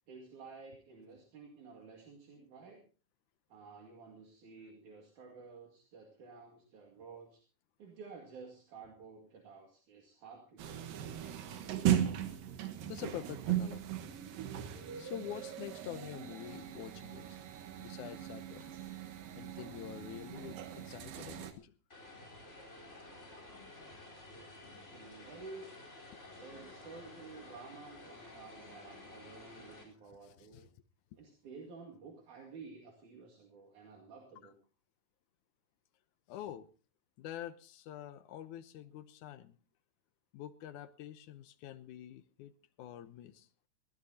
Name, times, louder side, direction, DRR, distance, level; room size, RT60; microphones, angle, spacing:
voice 1, 0.1-2.8 3.5-7.4 7.8-10.9 24.9-25.7 26.4-30.7 31.2-34.6, right 4 dB, 65° right, 0 dB, 3.6 m, -52 dB
sound 1, 10.6-21.5, right 10 dB, 85° right, 3.0 m, -38 dB
voice 2, 12.9-14.0 15.0-17.4 17.8-18.7 19.4-21.7 30.2-30.6 36.3-36.7 37.2-39.6 40.3-42.5 42.8-43.5, left 11 dB, 75° left, 12 dB, 2.1 m, -46 dB
Vehicle, 21.9-29.8, left 2 dB, 20° left, 4.2 m, -52 dB
21.0 x 16.0 x 2.8 m, 0.35 s
omnidirectional pair, 3.9 m